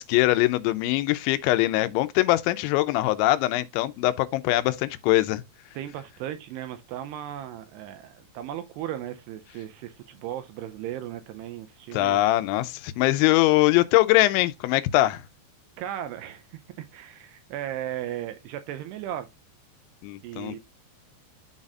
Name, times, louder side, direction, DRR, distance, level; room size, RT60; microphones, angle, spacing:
voice 1, 0.0-5.4 11.9-15.2 20.0-20.6, left 17 dB, 90° left, 3.0 m, -22 dB
voice 2, 5.7-12.2 15.8-19.3 20.2-20.6, right 11 dB, 80° right, 2.5 m, -36 dB
12.0 x 4.1 x 2.4 m
omnidirectional pair, 5.2 m